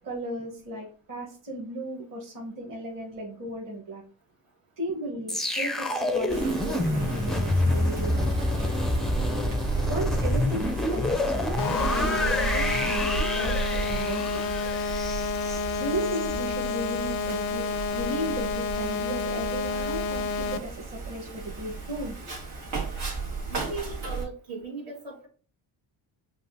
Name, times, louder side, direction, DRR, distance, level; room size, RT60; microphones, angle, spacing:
voice 1, 0.0-4.0 4.8-8.7 9.9-14.5 15.8-22.1 23.3-23.4, right 1 dB, 40° right, -2 dB, 1.4 m, -35 dB
sound 1, 5.3-16.4 16.7-16.9, left 1 dB, ahead, 0.4 m, -28 dB
Wind, 6.3-24.2, right 4 dB, 85° right, 1.8 m, -34 dB
sound 2, 11.6-20.6, left 4 dB, 85° left, 0.6 m, -30 dB
voice 2, 23.5-25.3, right 3 dB, 70° right, -3 dB, 2.0 m, -37 dB
5.8 x 2.5 x 2.7 m, 0.40 s
cardioid pair, 80°, 47 cm